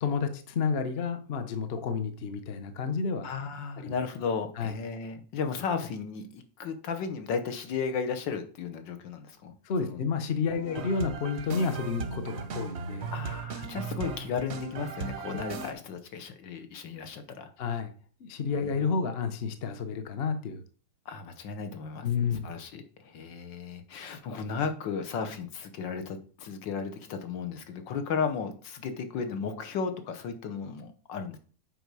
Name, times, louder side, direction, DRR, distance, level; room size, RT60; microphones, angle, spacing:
voice 1, 0.0-3.3 3.8-3.9 4.6-4.7 9.6-13.1 17.6-17.9 18.2-20.6 22.0-22.5, left 5 dB, 45° left, 8 dB, 0.8 m, -30 dB
voice 2, 3.2-9.5 9.8-10.0 10.5-10.8 13.1-17.5 18.6-18.8 21.1-22.1 22.4-31.4, left 5 dB, 65° left, 8 dB, 1.7 m, -34 dB
sound 1, 10.6-15.7, right 5 dB, 50° right, 0.8 m, -37 dB
8.0 x 5.4 x 4.8 m, 0.42 s
omnidirectional pair, 2.2 m